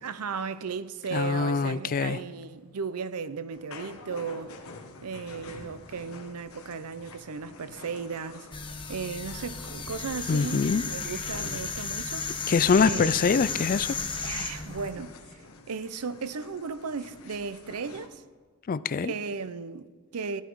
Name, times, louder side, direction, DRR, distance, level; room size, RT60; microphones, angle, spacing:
voice 1, 0.0-4.5 5.0-8.5 8.9-12.5 12.8-13.2 14.2-15.4 15.7-18.2 19.0-20.4, right 5 dB, 90° right, 0.6 m, -36 dB
voice 2, 1.1-2.2 10.3-10.8 12.5-14.0 18.7-19.1, left 5 dB, 40° left, 0.4 m, -24 dB
sound 1, 3.5-18.1, left 3 dB, 70° left, 1.3 m, -48 dB
sound 2, 8.5-14.9, left 5 dB, 20° left, 1.2 m, -34 dB
16.0 x 11.5 x 4.6 m
head